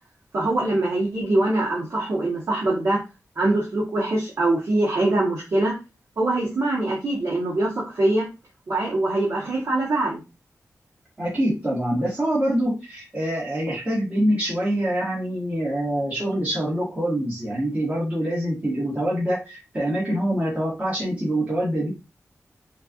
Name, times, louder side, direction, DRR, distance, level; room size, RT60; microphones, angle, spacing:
voice 1, 0.3-3.0 3.4-5.7 6.2-8.3 8.7-10.2, right 2 dB, 55° right, -5 dB, 1.2 m, -23 dB
voice 2, 11.2-21.9, right 1 dB, 25° right, -8 dB, 1.7 m, -25 dB
4.4 x 2.6 x 2.4 m, 0.26 s
wide cardioid pair, 135°, 6 cm